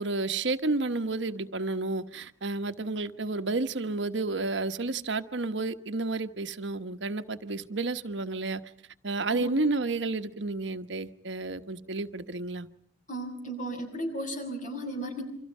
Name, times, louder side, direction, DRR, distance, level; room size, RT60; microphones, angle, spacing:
voice 1, 0.0-8.6 9.0-12.7, right 3 dB, 90° right, 1.2 m, -31 dB
voice 2, 13.1-15.2, right 1 dB, 45° left, 6.8 m, -35 dB
28.5 x 26.0 x 5.5 m
head